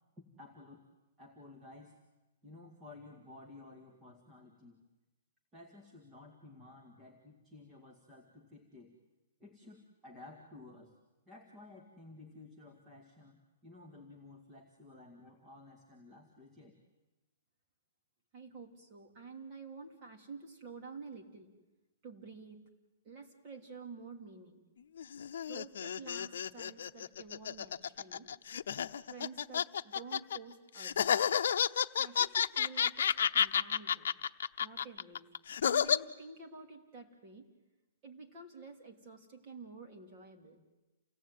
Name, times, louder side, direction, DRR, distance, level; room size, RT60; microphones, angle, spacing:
voice 1, 0.2-0.8 1.2-2.0 2.4-4.8 5.5-9.0 9.4-10.9 11.3-13.4 13.6-16.8, left 2 dB, 10° right, 0 dB, 2.1 m, -54 dB
voice 2, 18.3-21.5 22.0-22.6 23.0-24.6 25.4-28.3 29.1-31.4 32.0-34.1 34.6-35.3 35.6-37.5 38.0-40.6, right 4 dB, 25° right, 2 dB, 3.2 m, -50 dB
sound 1, 25.0-30.4 30.8-36.0, left 8 dB, 65° left, 0.8 m, -31 dB
29.0 x 18.0 x 9.4 m, 1.1 s
hypercardioid pair, 175°, 0 cm